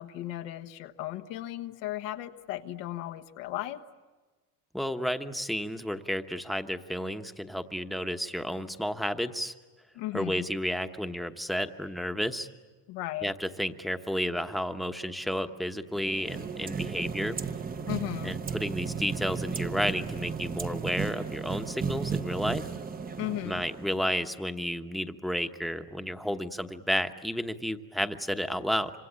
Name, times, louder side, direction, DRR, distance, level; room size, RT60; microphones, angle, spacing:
voice 1, 0.0-3.8 9.9-10.5 12.9-13.3 17.9-18.4 23.2-23.6, left 15 dB, 85° left, 7 dB, 1.4 m, -36 dB
voice 2, 4.7-9.5 10.1-12.5 13.2-17.4 18.2-22.7 23.4-28.9, equal, ahead, 7 dB, 1.1 m, -32 dB
sound 1, 15.9-24.2, right 6 dB, 20° right, 0.9 m, -35 dB
25.5 x 25.5 x 8.8 m, 1.3 s
cardioid pair, 125°, 41 cm